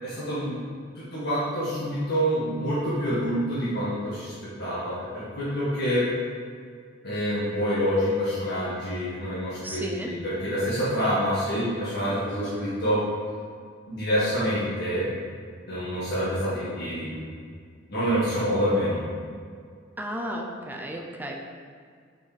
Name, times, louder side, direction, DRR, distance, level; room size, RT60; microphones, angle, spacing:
voice 1, 0.0-0.6 0.9-4.3 4.6-6.1 7.0-13.0 13.9-15.1 15.7-17.1 17.9-19.0, equal, 55° left, -9 dB, 1.6 m, -27 dB
voice 2, 9.6-10.1 20.0-21.3, right 1 dB, 10° right, 1 dB, 0.6 m, -33 dB
6.0 x 4.6 x 5.0 m, 2.1 s
head